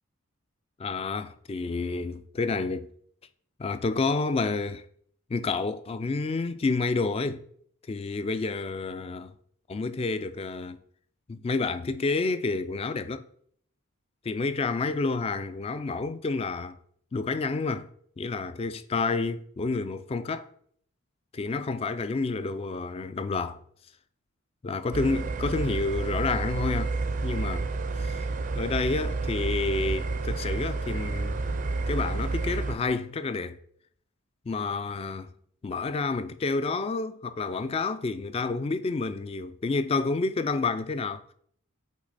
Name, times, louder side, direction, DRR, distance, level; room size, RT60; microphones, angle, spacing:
voice 1, 0.8-2.9 3.6-4.8 5.3-7.4 7.9-9.3 9.7-10.8 11.3-13.3 14.2-16.8 17.1-17.9 18.2-20.5 21.3-23.6 24.6-26.9 27.2-27.7 28.0-28.3 28.6-31.4 31.9-33.6 34.5-35.3 35.6-41.2, left 3 dB, 30° left, 0.3 m, -29 dB
sound 1, 24.9-32.8, right 3 dB, 40° right, 0.4 m, -30 dB
8.2 x 3.0 x 4.0 m
head